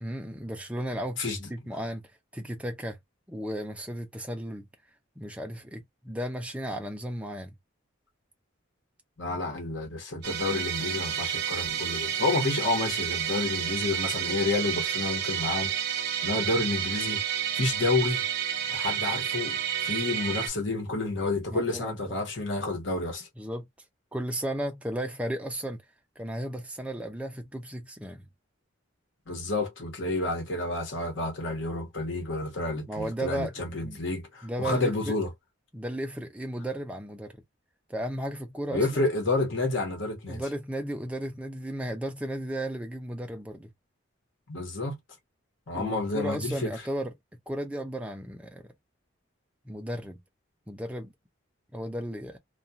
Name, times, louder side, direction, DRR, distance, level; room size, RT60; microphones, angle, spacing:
voice 1, 0.0-1.2 1.5-2.0 2.3-3.0 3.3-4.7 5.2-7.5 21.5-22.2 23.4-23.7 24.1-25.8 26.2-28.2 32.9-33.5 33.8-34.0 34.4-35.2 35.7-37.3 37.9-39.0 40.3-43.7 45.7-47.1 47.5-48.7 49.7-50.2 50.7-51.1 51.7-52.4, right 1 dB, 5° right, 0.5 m, -34 dB
voice 2, 1.2-1.5 9.2-17.2 17.6-18.2 18.7-23.3 29.3-35.3 38.7-40.4 44.5-45.0 45.7-46.8, left 2 dB, 60° left, 1.1 m, -30 dB
Musical instrument, 10.2-20.5, right 9 dB, 50° right, 0.6 m, -30 dB
2.4 x 2.3 x 2.7 m
head